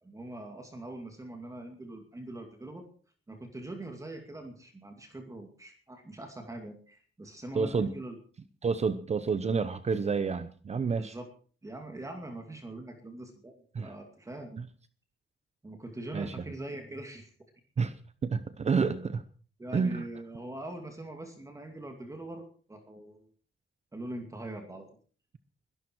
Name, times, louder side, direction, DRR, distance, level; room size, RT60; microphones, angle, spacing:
voice 1, 0.0-2.8 3.3-8.2 11.0-11.3 11.6-13.5 13.8-14.6 15.6-17.3 19.6-23.3 23.9-24.9, right 1 dB, 15° right, 4 dB, 2.4 m, -42 dB
voice 2, 7.5-7.9 8.6-11.2 13.7-13.9 16.1-16.3 17.8-17.9 18.2-19.2 19.7-20.1, right 5 dB, 30° right, 12 dB, 0.8 m, -29 dB
21.5 x 12.5 x 4.7 m, 0.43 s
wide cardioid pair, 180°, 21 cm